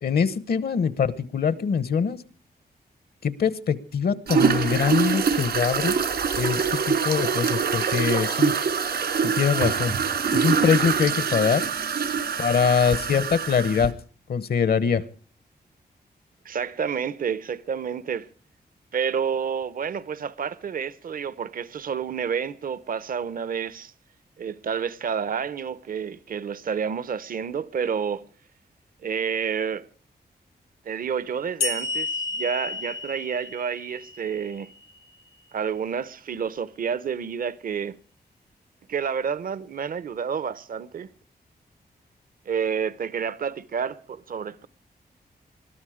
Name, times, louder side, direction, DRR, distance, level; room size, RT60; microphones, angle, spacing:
voice 1, 0.0-2.2 3.2-6.0 6.4-8.5 9.2-9.9 10.3-11.6 12.4-13.9 14.3-15.0, left 6 dB, 70° left, 1.0 m, -23 dB
sound 1, 4.3-13.9, right 6 dB, 75° right, 2.2 m, -24 dB
voice 2, 16.4-18.3 18.9-23.9 24.4-28.2 29.0-29.9 30.8-34.7 35.5-38.0 38.9-41.1 42.5-44.7, right 7 dB, 60° right, 0.7 m, -29 dB
Tingsha Cymbal, 31.6-35.0, left 3 dB, 85° left, 1.7 m, -31 dB
21.0 x 13.0 x 4.9 m
wide cardioid pair, 110°, 17 cm